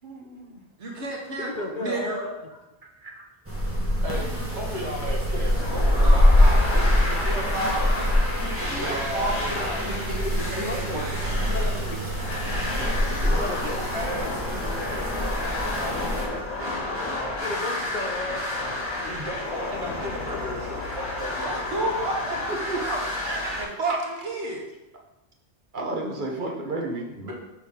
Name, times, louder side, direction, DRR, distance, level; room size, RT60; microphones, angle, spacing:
voice 1, 0.0-0.6 3.0-3.2 5.4-5.5 22.7-22.8 23.2-24.0 25.7-27.3, right 2 dB, 50° right, 0 dB, 1.0 m, -33 dB
voice 2, 0.8-2.2 6.0-8.1 8.4-11.6 21.4-23.1 23.6-24.6, right 2 dB, 85° right, -2 dB, 1.6 m, -32 dB
voice 3, 1.4-2.3 10.1-11.0 11.5-12.0 12.8-13.8 14.2-14.4 16.5-18.4, left 2 dB, 45° left, 3 dB, 0.8 m, -35 dB
sound 1, 3.5-16.2, left 1 dB, 10° right, 1.2 m, -24 dB
voice 4, 4.0-6.3 8.6-9.8 12.7-16.0 19.0-21.5 27.2-27.3, equal, 65° right, -3 dB, 1.9 m, -35 dB
sound 2, 5.5-23.6, left 2 dB, 10° left, 1.9 m, -31 dB
6.0 x 5.9 x 3.7 m, 0.98 s
omnidirectional pair, 1.1 m